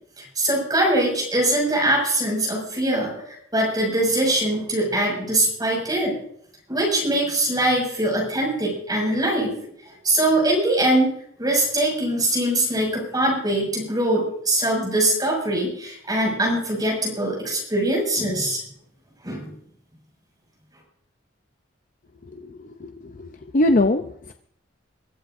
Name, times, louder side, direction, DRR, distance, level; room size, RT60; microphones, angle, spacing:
voice 1, 0.4-6.1 6.7-9.5 10.0-11.1 11.4-18.6 19.2-19.5, right 1 dB, 20° right, -2 dB, 6.4 m, -22 dB
voice 2, 22.3-22.9 23.2-23.3 23.5-24.3, left 1 dB, 45° left, 6 dB, 0.6 m, -22 dB
24.0 x 14.5 x 2.6 m, 0.66 s
head